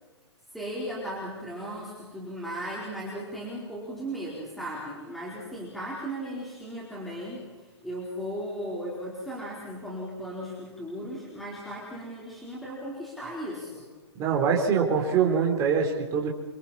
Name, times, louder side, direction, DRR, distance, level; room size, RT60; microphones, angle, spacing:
voice 1, 0.5-13.9, equal, ahead, -5 dB, 4.3 m, -36 dB
voice 2, 14.2-16.3, right 6 dB, 20° right, 0 dB, 4.2 m, -24 dB
29.0 x 25.5 x 4.4 m, 1.3 s
hypercardioid pair, 150°, 15 cm